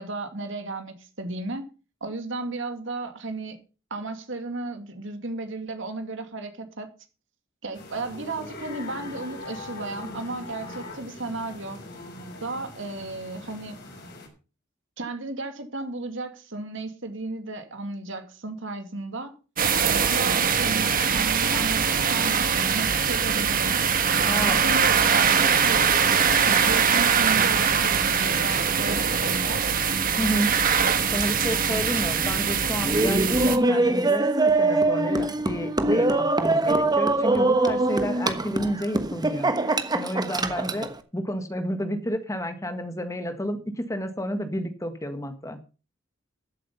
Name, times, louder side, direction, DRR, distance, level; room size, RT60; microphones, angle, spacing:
voice 1, 0.0-1.7 2.0-3.6 3.9-6.9 7.6-11.8 12.4-13.8 15.0-19.3 19.8-23.8 24.5-25.9 26.5-29.7, right 2 dB, 70° right, 2.5 m, -34 dB
sound 1, 7.7-14.3, left 2 dB, 60° left, 6.0 m, -41 dB
sound 2, 19.6-33.6, right 6 dB, 45° right, 1.5 m, -22 dB
voice 2, 24.3-24.6 30.2-30.5 31.1-34.3 34.6-45.6, equal, 15° left, 1.7 m, -31 dB
Laughter, 32.8-40.9, right 2 dB, 20° right, 1.2 m, -23 dB
13.5 x 8.2 x 5.6 m
head